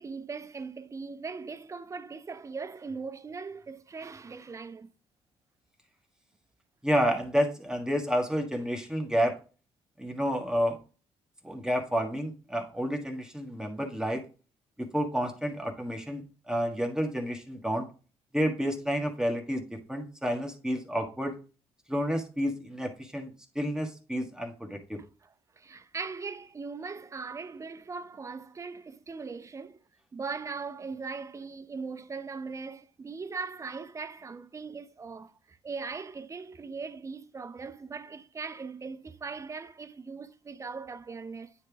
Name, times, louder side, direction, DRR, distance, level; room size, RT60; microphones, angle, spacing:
voice 1, 0.0-4.9 25.2-25.3 25.6-29.8 30.1-41.5, right 4 dB, 25° right, 0.6 m, -39 dB
voice 2, 6.8-9.4 10.0-10.8 11.4-14.2 14.8-17.9 18.3-21.3 21.9-25.0, equal, 5° right, 1.4 m, -30 dB
9.5 x 3.3 x 3.5 m
cardioid pair, 85°, 11 cm